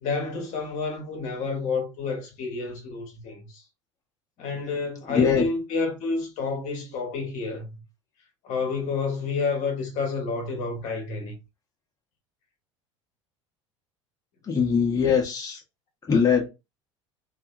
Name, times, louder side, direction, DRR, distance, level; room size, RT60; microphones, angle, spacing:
voice 1, 0.0-3.6 4.4-7.8 8.4-11.4, left 4 dB, 50° left, 1.0 m, -30 dB
voice 2, 5.1-5.4 14.5-15.6 16.1-16.5, left 6 dB, 20° left, 0.9 m, -21 dB
2.7 x 2.5 x 2.4 m
figure-of-eight pair, 70°, 16 cm